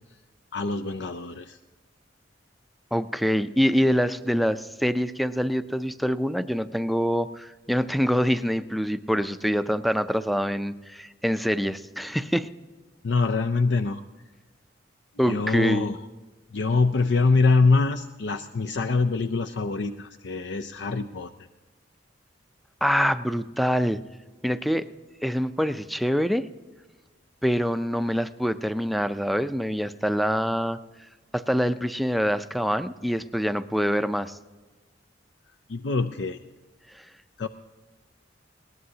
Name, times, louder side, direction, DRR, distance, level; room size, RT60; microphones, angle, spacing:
voice 1, 0.5-1.6 13.0-14.0 15.2-16.0 16.5-21.3 35.7-36.4 37.4-37.5, left 3 dB, 70° left, 7 dB, 0.5 m, -24 dB
voice 2, 2.9-12.5 15.2-15.9 22.8-24.0 24.4-24.9 25.2-26.5 27.4-30.8 31.3-34.4 36.9-37.0, equal, ahead, 12 dB, 0.4 m, -25 dB
20.5 x 18.0 x 2.8 m, 1.3 s
head